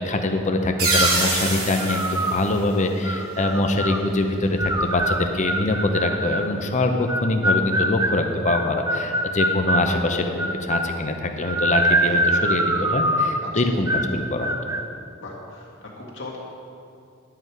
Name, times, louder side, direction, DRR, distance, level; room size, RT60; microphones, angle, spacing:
voice 1, 0.0-14.5, left 2 dB, 35° left, 5 dB, 0.7 m, -24 dB
sound 1, 0.8-1.2 1.8-2.4 3.0-4.0 4.6-6.5 7.1-9.9 10.4-11.0 11.4-13.4 13.9-14.1 14.4-14.8, right 1 dB, 15° right, 0.4 m, -24 dB
sound 2, 0.8-3.4, right 2 dB, 80° right, 2.4 m, -25 dB
voice 2, 15.2-16.4, left 2 dB, 65° left, -4 dB, 1.8 m, -39 dB
11.0 x 7.9 x 4.7 m, 2.6 s
head